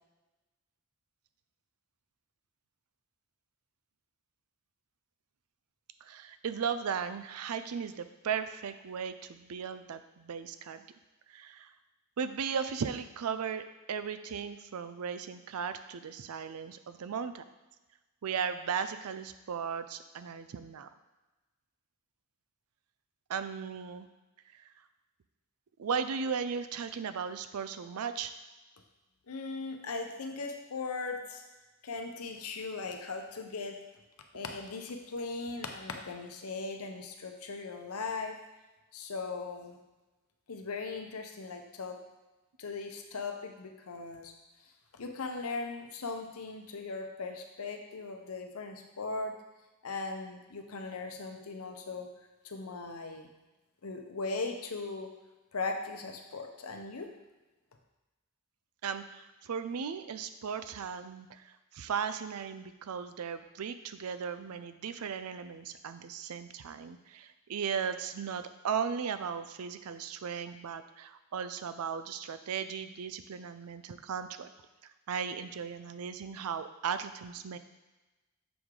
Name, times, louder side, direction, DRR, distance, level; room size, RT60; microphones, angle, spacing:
voice 1, 6.0-10.8 11.3-11.7 12.2-17.4 18.2-20.9 23.3-24.1 25.8-28.3 58.8-74.5 75.1-77.6, right 6 dB, 85° right, 11 dB, 0.4 m, -36 dB
voice 2, 29.3-31.4 31.8-33.8 34.3-38.4 38.9-39.8 40.5-42.0 42.6-44.3 44.9-49.3 49.8-52.1 52.4-53.3 53.8-55.1 55.5-57.1, left 3 dB, 80° left, 4 dB, 0.8 m, -38 dB
7.1 x 3.7 x 4.7 m, 1.1 s
head